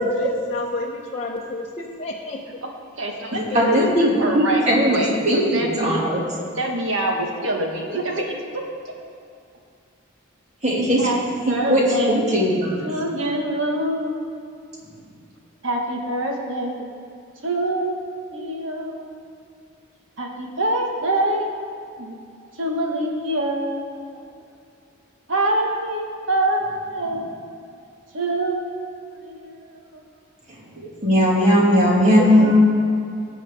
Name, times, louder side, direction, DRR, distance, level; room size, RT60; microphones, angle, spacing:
voice 1, 0.0-2.6 3.4-3.7 32.2-32.6, left 3 dB, 30° left, -4 dB, 0.8 m, -29 dB
voice 2, 3.0-3.9 4.2-6.0 6.5-8.7 11.0-11.2 11.5-12.2 12.8-14.2 15.6-16.9 17.4-19.0 20.2-21.6 22.0-22.2 22.5-24.2 25.3-27.6 28.1-30.0, right 1 dB, 75° right, 0 dB, 1.7 m, -25 dB
voice 3, 3.5-5.0 5.2-6.2 10.6-11.1 11.5-11.8 12.1-12.9 30.7-32.6, equal, 35° right, -4 dB, 2.4 m, -18 dB
17.0 x 7.7 x 3.6 m, 2.4 s
head